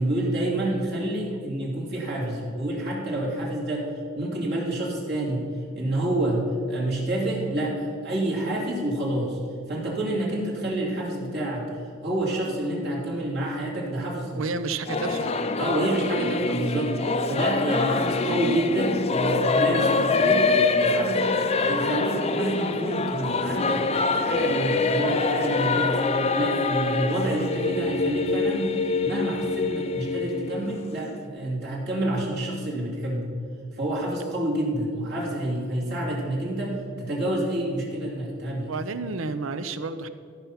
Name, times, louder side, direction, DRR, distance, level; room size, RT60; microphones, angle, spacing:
voice 1, 0.0-3.9 4.1-5.4 5.7-9.4 9.7-11.6 12.0-14.4 15.6-20.5 20.8-26.0 26.3-33.3 33.7-38.7, right 1 dB, 55° right, -4 dB, 2.8 m, -28 dB
voice 2, 14.3-15.4 38.7-40.1, right 3 dB, 75° right, 12 dB, 0.6 m, -30 dB
Singing / Musical instrument, 14.9-31.2, left 3 dB, 30° left, 0.5 m, -25 dB
14.0 x 5.7 x 5.8 m, 2.4 s
head